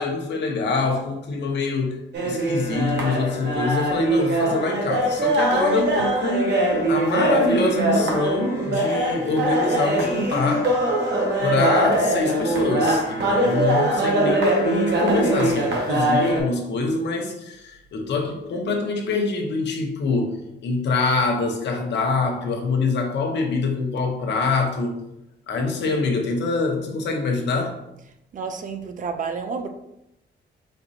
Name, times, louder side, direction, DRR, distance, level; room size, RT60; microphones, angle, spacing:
voice 1, 0.0-10.7 11.4-25.0 25.5-27.8, left 3 dB, 75° left, 2 dB, 0.8 m, -25 dB
sound 1, 2.1-16.4, right 1 dB, 75° right, 1.0 m, -22 dB
voice 2, 28.3-29.7, right 5 dB, 45° right, 6 dB, 0.4 m, -30 dB
4.3 x 4.1 x 2.6 m, 0.86 s
wide cardioid pair, 160°, 18 cm